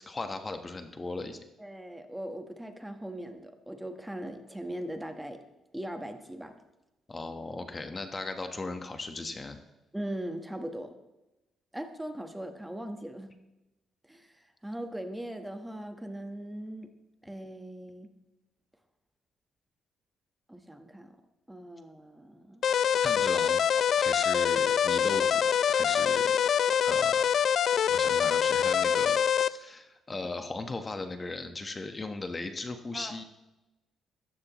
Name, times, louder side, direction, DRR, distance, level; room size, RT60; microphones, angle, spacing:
voice 1, 0.0-1.4 7.1-9.6 23.0-23.6 23.9-26.4 26.8-27.3 27.9-33.2, left 3 dB, 25° left, 7 dB, 1.2 m, -37 dB
voice 2, 1.6-5.4 5.7-6.6 9.9-10.9 11.7-13.3 14.1-16.9 17.2-18.1 20.5-21.2 21.5-22.6 32.9-33.2, right 1 dB, 5° right, 6 dB, 1.3 m, -40 dB
sound 1, 22.6-29.5, left 8 dB, 60° left, 0.4 m, -25 dB
14.0 x 14.0 x 3.1 m, 1.0 s
cardioid pair, 90°, 0 cm